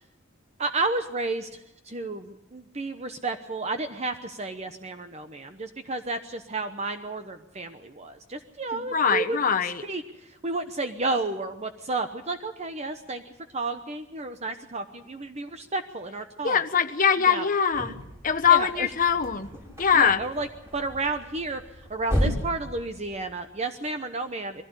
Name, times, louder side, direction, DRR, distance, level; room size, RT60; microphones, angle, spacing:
voice 1, 0.6-13.2 13.5-16.6 17.3-17.5 18.5-18.9 19.9-20.5 20.7-21.6 21.9-24.6, right 3 dB, 35° right, 8 dB, 1.0 m, -32 dB
voice 2, 8.7-9.8 16.4-17.9 18.2-19.5 19.8-20.2, left 7 dB, 40° left, 8 dB, 1.1 m, -22 dB
sound 1, 17.7-23.6, equal, 15° right, 6.9 m, -34 dB
22.5 x 16.0 x 8.1 m, 0.91 s
head